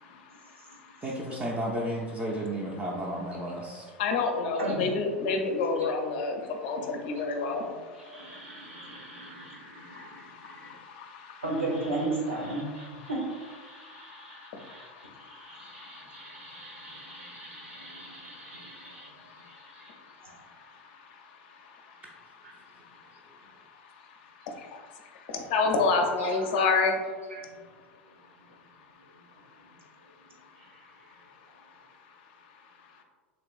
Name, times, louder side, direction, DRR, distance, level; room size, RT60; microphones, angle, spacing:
voice 1, 0.0-1.0 4.0-11.4 13.7-22.2 22.5-27.0 31.2-31.3 31.6-31.9, left 4 dB, 50° left, 4 dB, 0.5 m, -33 dB
voice 2, 1.0-3.9, right 1 dB, 20° right, -3 dB, 0.4 m, -32 dB
voice 3, 7.9-10.7 11.4-20.4 22.4-22.6 26.2-26.5 27.3-27.6 28.4-28.5 29.1-29.2 29.6-29.7 30.6-31.0, right 2 dB, 75° right, -2 dB, 0.8 m, -38 dB
3.3 x 2.9 x 2.4 m, 1.5 s
figure-of-eight pair, 85°, 7 cm